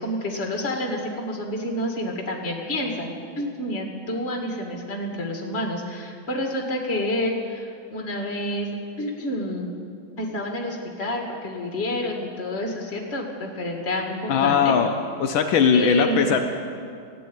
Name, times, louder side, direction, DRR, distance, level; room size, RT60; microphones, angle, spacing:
voice 1, 0.0-8.7 9.0-9.7 10.2-14.7 15.7-16.3, left 1 dB, 30° left, 1 dB, 2.1 m, -28 dB
voice 2, 14.3-14.9 15.2-16.4, left 7 dB, 80° left, 5 dB, 1.5 m, -19 dB
15.0 x 9.3 x 8.8 m, 2.4 s
omnidirectional pair, 2.2 m